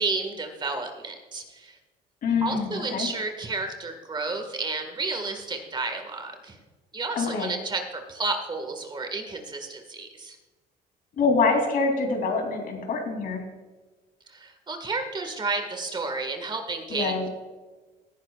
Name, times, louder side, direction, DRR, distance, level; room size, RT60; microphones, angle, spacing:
voice 1, 0.0-1.8 2.4-6.6 6.9-10.4 14.3-17.4, right 3 dB, 25° right, 5 dB, 1.8 m, -31 dB
voice 2, 2.2-3.1 7.1-7.5 11.2-13.5 16.9-17.3, left 4 dB, 55° left, 3 dB, 3.1 m, -25 dB
18.0 x 9.8 x 2.4 m, 1.2 s
cardioid pair, 110°, 17 cm